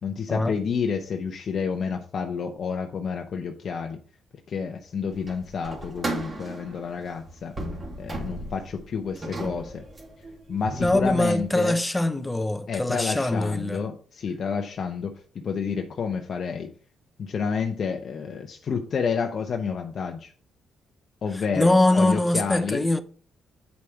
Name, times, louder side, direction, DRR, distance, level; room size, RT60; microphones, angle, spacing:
voice 1, 0.0-4.0 4.5-7.5 8.0-9.8 10.5-11.8 12.7-16.7 17.2-20.3 21.2-22.8, left 6 dB, 50° left, 0.8 m, -29 dB
sound 1, 5.1-11.5, right 2 dB, 30° right, 2.5 m, -36 dB
voice 2, 10.8-13.8 21.5-23.0, left 1 dB, 10° left, 0.7 m, -22 dB
8.3 x 4.9 x 4.5 m
cardioid pair, 90°, 0 cm